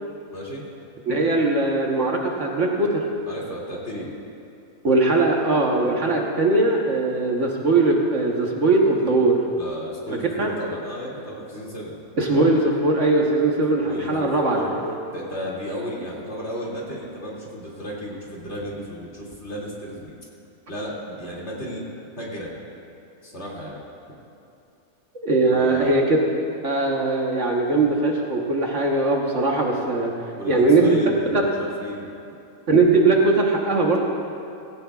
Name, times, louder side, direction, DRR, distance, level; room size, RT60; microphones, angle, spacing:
voice 1, 0.3-0.6 3.2-4.1 9.6-12.0 13.8-14.7 15.1-20.1 20.7-21.9 22.2-22.6 23.2-23.8 25.5-26.0 30.3-32.1, equal, 45° left, -5 dB, 2.8 m, -34 dB
voice 2, 1.1-3.0 4.8-9.4 10.4-10.5 12.2-14.6 14.8-14.9 25.2-26.2 26.6-30.1 30.4-31.0 31.3-31.4 32.7-34.0, right 2 dB, 55° right, 0 dB, 1.4 m, -20 dB
18.0 x 16.5 x 2.4 m, 2.6 s
omnidirectional pair, 1.6 m